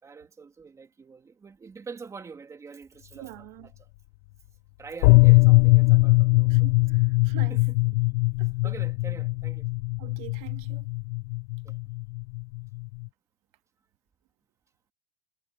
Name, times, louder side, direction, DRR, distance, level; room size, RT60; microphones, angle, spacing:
voice 1, 0.0-3.3 3.6-3.7 4.8-6.7 7.5-7.6 8.6-9.7 11.6-11.8, right 5 dB, 15° right, 3.0 m, -44 dB
voice 2, 3.1-3.7 6.5-7.6 8.4-8.7 10.0-10.9, right 21 dB, 65° right, 2.1 m, -44 dB
sound 1, 5.0-13.1, left 26 dB, 80° left, 0.4 m, -21 dB
cardioid pair, 170°, 21 cm